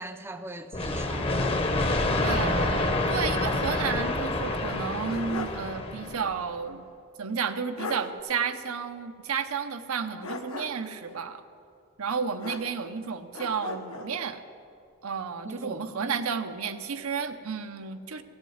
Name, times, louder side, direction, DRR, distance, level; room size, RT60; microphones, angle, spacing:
voice 1, 0.0-1.5 15.4-16.2, right 1 dB, 10° right, 0.4 m, -41 dB
sound 1, 0.7-6.4, left 2 dB, 25° left, 0.8 m, -27 dB
voice 2, 2.2-6.9 7.2-11.4 12.0-14.4 15.0-18.2, right 6 dB, 85° right, 0.7 m, -32 dB
sound 2, 4.7-5.7 6.0-6.1 7.4-7.5 7.8-8.1 10.2-10.9 12.4-13.0 13.3-14.1, left 2 dB, 80° left, 1.0 m, -38 dB
15.5 x 8.0 x 7.9 m
head